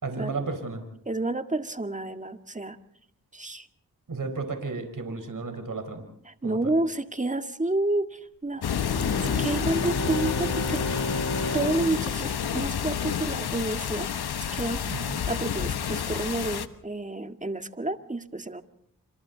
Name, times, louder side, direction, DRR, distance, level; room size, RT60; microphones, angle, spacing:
voice 1, 0.0-0.8 4.1-6.0 6.4-6.7 14.8-15.2, right 3 dB, 55° right, 7 dB, 4.7 m, -33 dB
voice 2, 1.1-2.8 3.3-3.7 6.3-11.0 11.5-14.1 14.5-14.8 15.3-18.6, right 2 dB, 20° right, 8 dB, 1.9 m, -30 dB
sound 1, 8.6-16.7, left 8 dB, 75° left, 1.2 m, -29 dB
Bowed string instrument, 8.6-13.4, equal, 45° left, 4.7 m, -33 dB
28.0 x 25.5 x 4.1 m, 0.67 s
cardioid pair, 50°, 38 cm